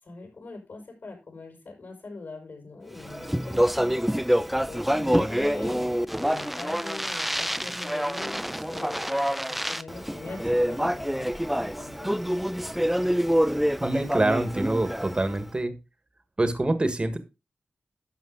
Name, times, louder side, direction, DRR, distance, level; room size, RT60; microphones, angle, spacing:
voice 1, 0.0-4.1 4.7-12.2, left 3 dB, 65° left, 1 dB, 5.4 m, -42 dB
Speech, 3.0-15.4, equal, 5° right, 0.5 m, -26 dB
voice 2, 13.8-15.7 16.4-17.2, right 2 dB, 30° right, 9 dB, 1.6 m, -25 dB
12.0 x 7.1 x 3.9 m, 0.27 s
wide cardioid pair, 80°, 4 cm